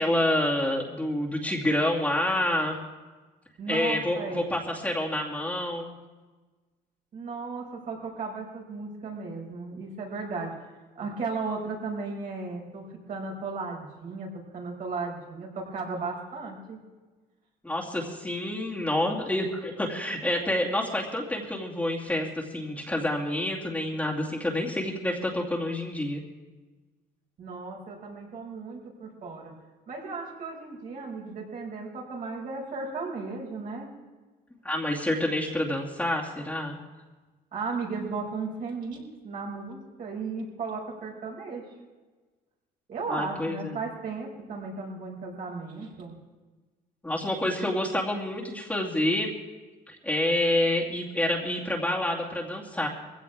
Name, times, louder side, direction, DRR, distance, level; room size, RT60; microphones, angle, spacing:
voice 1, 0.0-2.8 3.7-5.9 17.6-26.2 34.6-36.8 43.1-43.8 47.0-49.3 49.9-52.9, left 1 dB, 10° left, -3 dB, 2.5 m, -28 dB
voice 2, 3.6-4.6 7.1-16.8 27.4-29.5 29.9-33.9 37.5-41.6 42.9-46.1, right 4 dB, 55° right, -1 dB, 5.9 m, -35 dB
22.0 x 16.5 x 3.6 m, 1.3 s
cardioid pair, 110°, 17 cm